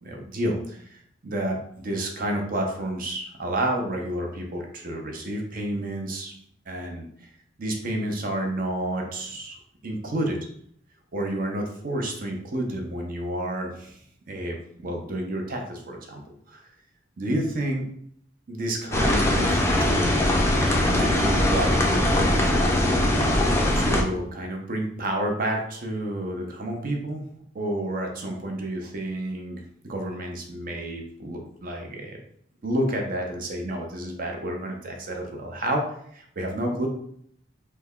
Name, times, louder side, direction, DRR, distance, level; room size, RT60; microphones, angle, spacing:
voice 1, 0.0-6.3 6.7-7.1 7.6-9.6 9.8-10.4 11.1-14.0 14.3-14.6 14.8-16.2 16.5-16.6 17.2-17.8 18.5-19.5 19.8-20.4 20.9-22.6 23.7-27.2 27.5-32.2 32.6-35.9 36.1-36.9, right 1 dB, 50° right, 2 dB, 0.6 m, -30 dB
sound 1, 18.9-24.0, left 1 dB, 15° left, 0.4 m, -21 dB
3.3 x 2.1 x 3.5 m, 0.66 s
head